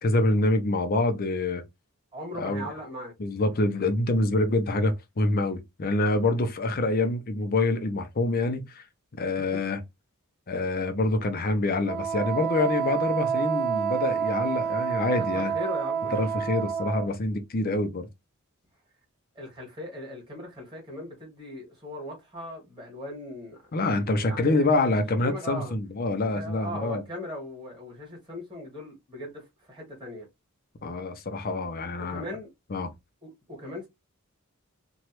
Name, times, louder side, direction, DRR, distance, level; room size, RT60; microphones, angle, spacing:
voice 1, 0.0-1.6 2.4-2.7 3.2-8.8 9.2-9.8 10.5-15.5 16.1-18.1 23.7-27.0 30.8-32.2 32.7-32.9, left 2 dB, 45° left, 0.6 m, -26 dB
voice 2, 2.1-3.1 9.4-9.5 14.7-14.8 15.2-16.2 19.4-23.7 24.2-25.7 26.3-30.3 32.1-32.5 33.2-33.9, left 1 dB, 25° right, 1.8 m, -39 dB
Wind instrument woodwind instrument, 11.9-17.1, right 7 dB, 50° right, 0.5 m, -28 dB
3.0 x 2.3 x 2.9 m
head